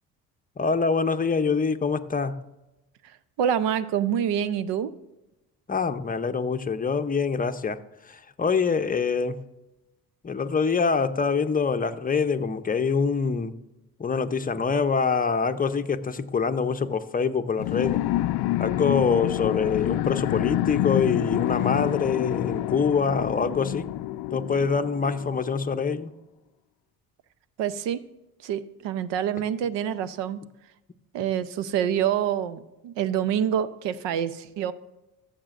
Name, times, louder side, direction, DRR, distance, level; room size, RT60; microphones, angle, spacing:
voice 1, 0.6-2.4 5.7-9.4 10.2-13.5 14.0-18.0 18.6-23.9 24.3-26.1, left 5 dB, 20° left, 9 dB, 0.7 m, -25 dB
voice 2, 3.4-4.9 27.6-28.0 28.4-30.4 31.1-34.7, right 9 dB, 70° right, 15 dB, 0.7 m, -26 dB
sound 1, 17.6-25.7, left 15 dB, 60° left, 0.5 m, -28 dB
14.5 x 6.8 x 2.5 m, 0.96 s
supercardioid pair, 60°, 44 cm